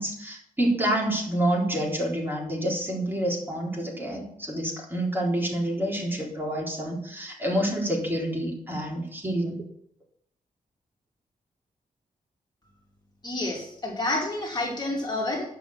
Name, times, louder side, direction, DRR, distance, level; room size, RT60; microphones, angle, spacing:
voice 1, 0.0-9.6, right 1 dB, 15° right, -2 dB, 3.9 m, -28 dB
voice 2, 13.2-15.4, left 2 dB, 30° left, -1 dB, 2.7 m, -29 dB
11.0 x 7.2 x 7.3 m, 0.70 s
wide cardioid pair, 140°, 14 cm